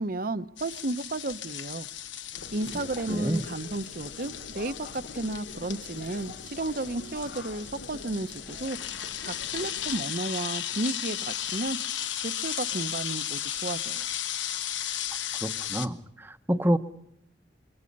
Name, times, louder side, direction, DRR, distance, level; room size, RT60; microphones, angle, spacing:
voice 1, 0.0-1.9 2.5-8.8 9.2-14.1, right 2 dB, 50° right, 13 dB, 0.8 m, -33 dB
sound 1, 0.6-15.9, left 10 dB, 90° left, 1.1 m, -35 dB
sound 2, 2.3-10.0, left 2 dB, 70° left, 1.0 m, -45 dB
voice 2, 3.1-3.4 15.4-16.8, equal, 10° right, 9 dB, 0.9 m, -28 dB
26.5 x 23.5 x 5.4 m, 0.76 s
head